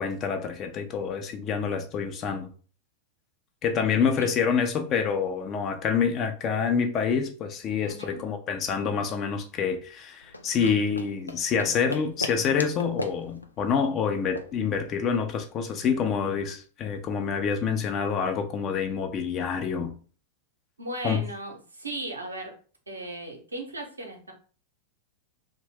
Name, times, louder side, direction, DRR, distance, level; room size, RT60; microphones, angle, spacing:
voice 1, 0.0-2.5 3.6-19.9 21.0-21.2, left 6 dB, 30° left, 0.5 m, -27 dB
voice 2, 7.9-8.2 20.8-22.5 22.9-24.3, right 2 dB, 80° right, 0.7 m, -37 dB
sound 1, 10.2-15.4, left 1 dB, 85° left, 0.3 m, -38 dB
2.6 x 2.2 x 3.3 m
figure-of-eight pair, 90°, 0 cm